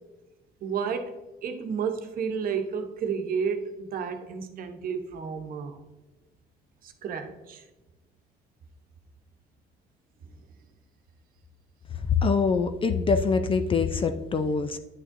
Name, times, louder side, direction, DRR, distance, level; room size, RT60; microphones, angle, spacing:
voice 1, 0.6-1.1 1.4-5.8 6.8-7.7, right 6 dB, 60° right, 6 dB, 1.0 m, -31 dB
voice 2, 12.2-14.8, left 4 dB, 30° left, 9 dB, 0.5 m, -24 dB
10.5 x 6.3 x 2.6 m, 1.1 s
cardioid pair, 110°, 17 cm